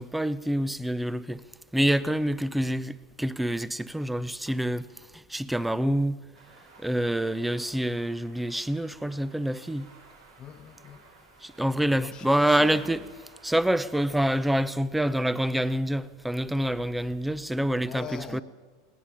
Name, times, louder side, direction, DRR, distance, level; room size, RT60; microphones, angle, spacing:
voice 1, 0.0-1.4 1.7-6.3 6.8-9.9 11.4-13.0 13.4-18.4, right 1 dB, 5° right, 0.7 m, -27 dB
sound 1, 6.3-14.5, right 3 dB, 90° right, 5.3 m, -54 dB
voice 2, 10.4-11.0 12.0-13.0 17.9-18.4, left 8 dB, 30° left, 1.1 m, -42 dB
20.5 x 18.0 x 7.3 m
supercardioid pair, 125°, 2 cm